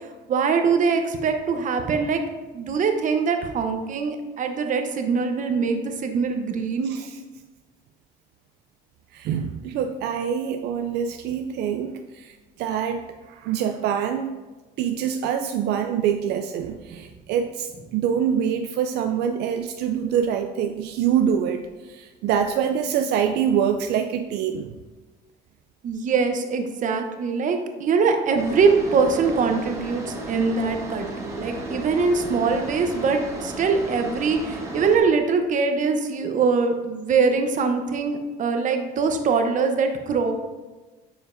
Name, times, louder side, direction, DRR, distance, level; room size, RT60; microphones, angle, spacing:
voice 1, 0.3-2.2 2.5-6.9 16.9-17.0 25.8-40.3, right 5 dB, 50° right, 5 dB, 0.8 m, -23 dB
voice 2, 9.1-13.0 13.3-14.4 14.8-24.8, right 8 dB, 80° right, 6 dB, 0.4 m, -25 dB
sound 1, 28.4-35.0, right 1 dB, 20° right, 1.3 m, -34 dB
9.0 x 5.0 x 2.6 m, 1.2 s
cardioid pair, 110°, 17 cm